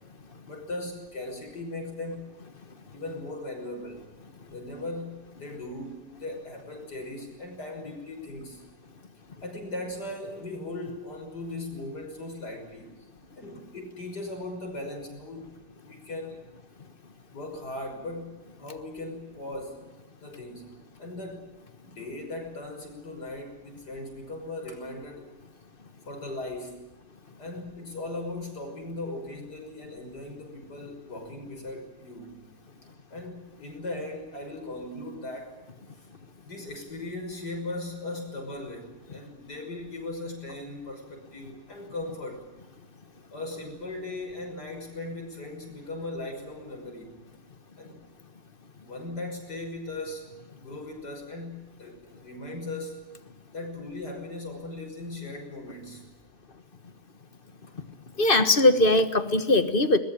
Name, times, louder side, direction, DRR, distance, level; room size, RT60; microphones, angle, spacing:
voice 1, 0.4-2.3 2.9-4.1 4.5-8.7 9.4-13.1 13.4-15.5 15.8-16.4 17.3-19.9 20.2-21.5 21.8-25.3 26.1-26.9 27.4-32.4 33.1-35.6 35.9-36.1 36.4-42.5 43.3-47.2 47.8-48.0 48.8-50.2 50.6-53.0 53.5-56.1 57.7-57.8, left 2 dB, 75° left, 3 dB, 6.6 m, -38 dB
voice 2, 58.2-60.0, left 2 dB, 35° left, 11 dB, 1.6 m, -20 dB
21.5 x 20.5 x 8.9 m, 1.1 s
omnidirectional pair, 1.8 m